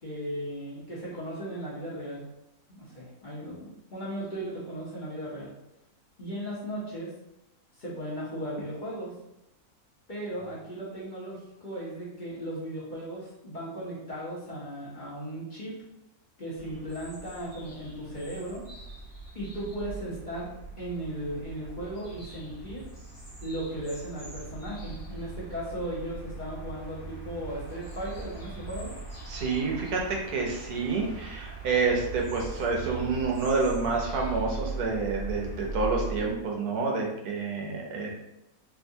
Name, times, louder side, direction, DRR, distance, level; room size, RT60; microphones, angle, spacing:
voice 1, 0.0-2.3 2.7-5.5 6.2-7.1 7.8-9.1 10.1-15.8 16.4-18.6 19.3-20.5 20.8-22.8 23.4-28.9, right 1 dB, 35° left, -8 dB, 1.0 m, -36 dB
sound 1, 16.6-36.3, right 3 dB, 10° left, 1.0 m, -40 dB
voice 2, 29.3-38.1, right 4 dB, 85° right, -1 dB, 1.3 m, -28 dB
3.4 x 2.6 x 2.7 m, 0.86 s
omnidirectional pair, 1.6 m